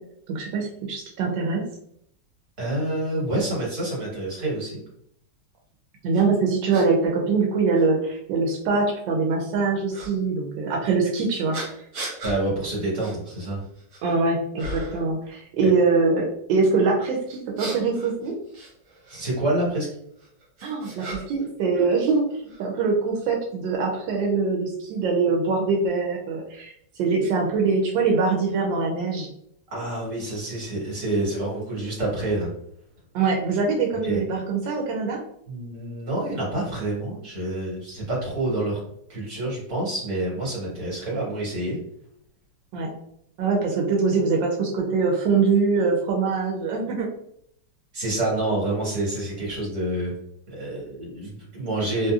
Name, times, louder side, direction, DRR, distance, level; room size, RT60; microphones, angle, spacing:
voice 1, 0.3-1.6 6.0-11.6 14.0-18.3 20.6-29.3 33.1-35.2 42.7-42.9 43.4-47.1, right 4 dB, 85° right, 0 dB, 1.3 m, -23 dB
voice 2, 2.6-4.8 12.2-13.6 15.6-15.7 19.1-19.9 29.7-32.5 34.0-34.2 35.5-38.8 39.1-41.8 47.9-50.1 50.5-52.1, right 1 dB, 50° right, -6 dB, 1.8 m, -27 dB
sound 1, 6.1-6.2 6.7-6.9 7.7-7.8 9.9-10.1 11.5-12.4 13.0-13.2 13.6-14.1 14.6-15.1 17.3-19.2 20.2-21.5 21.7-22.6, right 2 dB, 65° right, 1.6 m, -35 dB
3.1 x 2.7 x 2.3 m, 0.71 s
omnidirectional pair, 2.0 m